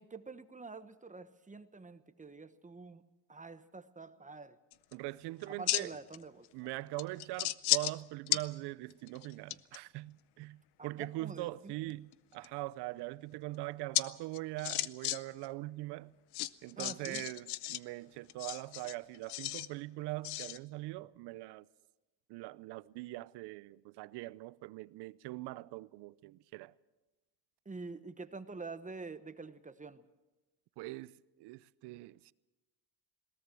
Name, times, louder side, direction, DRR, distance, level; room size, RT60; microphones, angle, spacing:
voice 1, 0.0-3.0 3.3-4.6 5.5-6.5 6.7-6.9 10.8-11.9 16.8-17.2 27.6-30.0, right 4 dB, 20° right, 1.1 m, -47 dB
sound 1, 4.7-4.9 5.4-6.2 6.4-6.5 7.0-8.0 8.3-8.4 8.9-9.8 11.9-12.5 13.9-14.0 14.3-15.2 15.4-15.5 16.3-17.8 18.3-19.7 20.2-20.6, left 17 dB, 85° left, 0.7 m, -34 dB
voice 2, 4.9-5.9 6.5-16.1 16.6-21.7 22.3-26.7 30.8-32.3, right 19 dB, 85° right, 0.7 m, -42 dB
21.0 x 18.5 x 7.6 m
cardioid pair, 95°, 39 cm